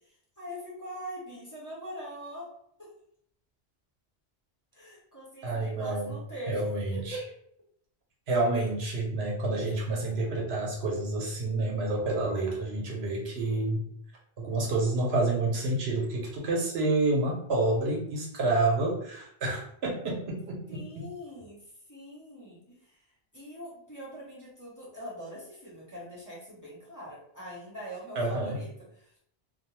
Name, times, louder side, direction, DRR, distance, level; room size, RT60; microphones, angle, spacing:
voice 1, 0.1-2.5 2.8-2.9 4.7-7.3 12.4-12.9 20.7-23.0 23.3-29.1, equal, 20° left, -8 dB, 0.8 m, -43 dB
voice 2, 5.4-6.2 6.5-7.2 8.3-13.9 14.4-21.0 28.2-28.6, right 2 dB, 75° right, -2 dB, 1.0 m, -29 dB
2.4 x 2.1 x 3.0 m, 0.70 s
omnidirectional pair, 1.1 m